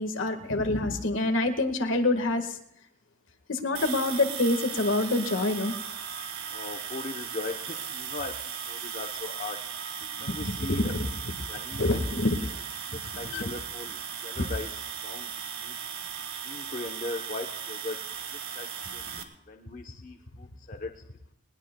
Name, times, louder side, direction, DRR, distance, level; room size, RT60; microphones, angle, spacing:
voice 1, 0.0-2.6 3.5-5.7 10.3-11.1 11.7-12.5 13.2-13.5, left 2 dB, 70° left, 6 dB, 1.6 m, -26 dB
sound 1, 3.7-19.2, right 7 dB, 90° right, 1.6 m, -37 dB
voice 2, 6.5-9.6 10.2-10.9 11.5-11.8 12.9-14.7 15.0-15.3 15.6-15.8 16.4-18.0 18.3-21.0, left 2 dB, 40° left, 3 dB, 0.8 m, -39 dB
20.0 x 20.0 x 2.2 m, 0.82 s
head